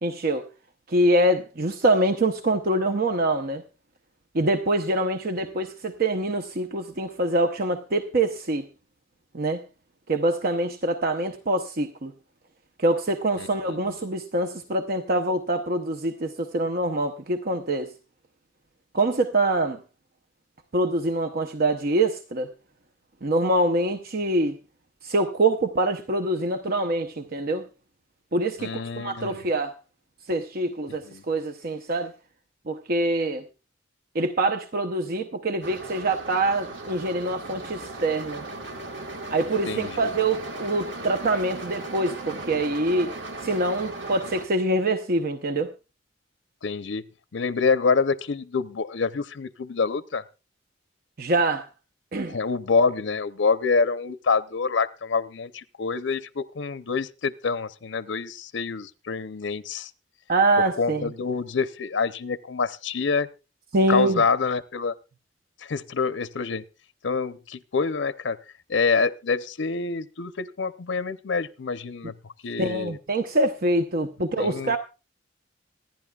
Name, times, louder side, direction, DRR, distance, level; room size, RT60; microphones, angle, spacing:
voice 1, 0.0-0.4 0.9-3.6 4.3-8.7 9.3-9.6 10.1-12.1 12.8-17.9 18.9-19.8 20.7-22.5 23.2-24.6 25.0-27.6 28.3-29.8 30.3-32.1 32.7-33.4 34.1-38.4 39.3-43.1 43.4-45.7 51.2-51.7 52.1-52.4 60.3-61.1 63.7-64.2 72.6-74.8, right 2 dB, 50° right, 7 dB, 0.8 m, -25 dB
voice 2, 28.6-29.4 31.1-31.2 39.6-40.0 46.6-47.1 47.3-50.2 52.3-59.9 60.8-63.3 63.9-64.9 65.6-66.6 67.0-68.4 68.7-73.0 74.4-74.8, left 4 dB, 70° left, 13 dB, 0.6 m, -26 dB
sound 1, 35.6-44.4, right 2 dB, 80° right, 1.6 m, -37 dB
26.0 x 10.5 x 2.3 m, 0.30 s
head